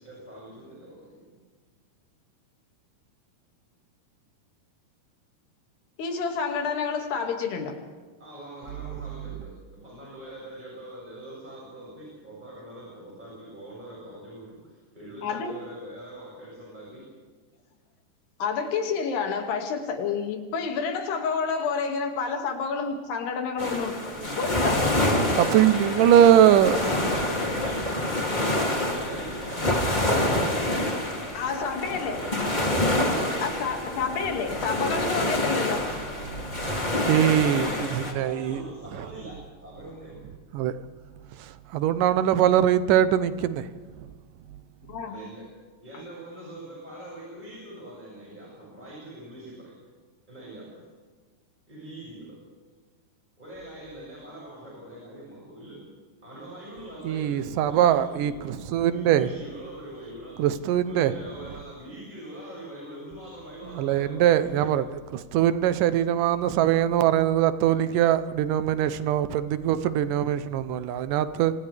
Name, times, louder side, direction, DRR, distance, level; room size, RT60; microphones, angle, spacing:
voice 1, 0.0-1.3 8.2-17.1 23.9-24.6 25.2-25.9 26.2-31.5 32.1-34.1 37.4-40.3 45.1-45.4 45.8-49.7 50.3-50.8 51.7-52.4 53.4-55.9 56.2-60.4 60.8-64.9, right 1 dB, 10° right, 6.9 m, -43 dB
voice 2, 6.0-7.7 15.2-15.6 18.4-24.0 24.4-24.8 31.3-32.3 33.4-35.9 44.8-45.2, left 5 dB, 85° left, 4.3 m, -29 dB
sound 1, 23.6-38.1, left 1 dB, 15° left, 2.1 m, -27 dB
voice 3, 25.4-26.8 36.6-36.7 37.1-38.6 40.5-40.7 41.7-43.6 57.0-59.3 60.4-61.1 63.7-64.8 65.1-71.5, right 10 dB, 75° right, 2.0 m, -22 dB
29.5 x 25.5 x 3.5 m
omnidirectional pair, 4.6 m